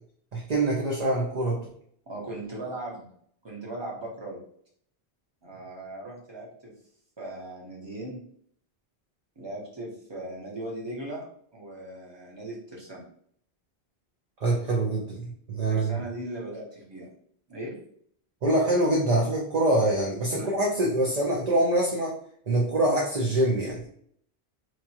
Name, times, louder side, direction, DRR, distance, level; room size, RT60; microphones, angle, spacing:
voice 1, 0.3-1.6 14.4-16.0 18.4-22.2 22.5-23.8, right 1 dB, 45° right, -2 dB, 0.7 m, -25 dB
voice 2, 2.1-3.1 3.4-4.4 5.4-6.7 7.2-8.2 9.4-11.2 11.5-13.0 15.7-17.1 17.5-17.7 20.3-20.5, right 1 dB, 25° right, -3 dB, 1.0 m, -38 dB
4.6 x 2.3 x 2.8 m, 0.63 s
omnidirectional pair, 1.1 m